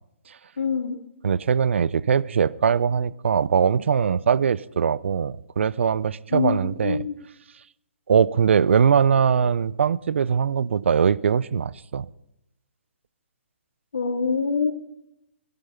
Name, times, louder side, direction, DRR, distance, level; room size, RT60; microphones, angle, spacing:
voice 1, 0.6-1.0 6.3-7.2 13.9-14.7, left 5 dB, 75° left, 2.9 m, -25 dB
voice 2, 1.2-7.1 8.1-12.1, right 7 dB, 70° right, 0.5 m, -21 dB
17.0 x 11.5 x 5.7 m
hypercardioid pair, 145°, 7 cm